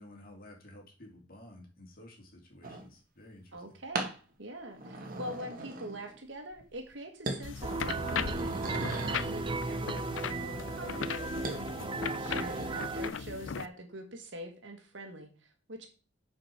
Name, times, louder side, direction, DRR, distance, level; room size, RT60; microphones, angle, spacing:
voice 1, 0.0-3.6 12.5-12.8, left 1 dB, 50° left, 2 dB, 2.6 m, -53 dB
sound 1, 2.6-2.9 3.9-4.2 4.7-6.2 6.5-6.9 7.3-7.5 7.9-9.4 11.4-11.6 12.1-12.7, right 2 dB, 50° right, 1.6 m, -39 dB
voice 2, 3.5-4.1 4.4-15.9, right 1 dB, 70° right, 5 dB, 1.7 m, -44 dB
sound 2, 7.4-13.7, left 6 dB, 85° left, 0.5 m, -38 dB
sound 3, 7.6-13.1, right 3 dB, 25° right, 0.4 m, -36 dB
7.7 x 5.2 x 5.8 m, 0.36 s
head